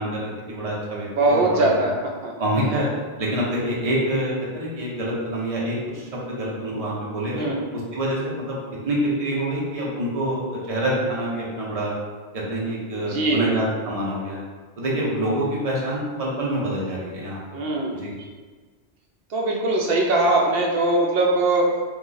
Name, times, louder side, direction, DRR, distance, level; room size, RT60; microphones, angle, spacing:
voice 1, 0.0-1.9 2.4-2.9 3.2-8.6 8.8-11.9 12.3-14.4 14.8-17.4 17.9-18.1, right 1 dB, 40° right, -5 dB, 0.8 m, -26 dB
voice 2, 1.1-1.9 2.2-2.3 2.7-2.8 7.3-7.6 12.9-13.5 17.5-18.0 19.3-21.7, right 2 dB, 75° right, -1 dB, 0.8 m, -21 dB
3.0 x 2.3 x 3.8 m, 1.4 s
omnidirectional pair, 1.0 m